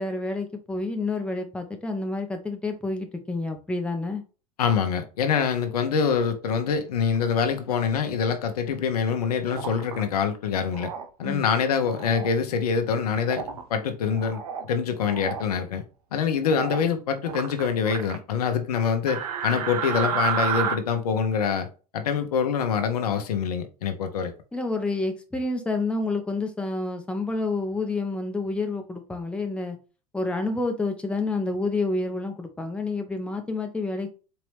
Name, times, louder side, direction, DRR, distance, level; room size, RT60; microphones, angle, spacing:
voice 1, 0.0-4.2 11.2-11.4 24.5-29.8 30.1-34.1, left 3 dB, 5° left, 0.8 m, -29 dB
voice 2, 4.6-10.9 11.2-13.4 13.7-15.8 16.1-24.3, left 6 dB, 80° left, 0.9 m, -25 dB
sound 1, 9.4-10.0 10.7-11.1 11.8-12.3 13.2-13.6 14.1-14.7 15.0-15.4 16.4-16.9 17.2-18.2 19.1-20.7, right 7 dB, 85° right, 0.7 m, -31 dB
4.4 x 2.9 x 3.3 m
hypercardioid pair, 95°, 19 cm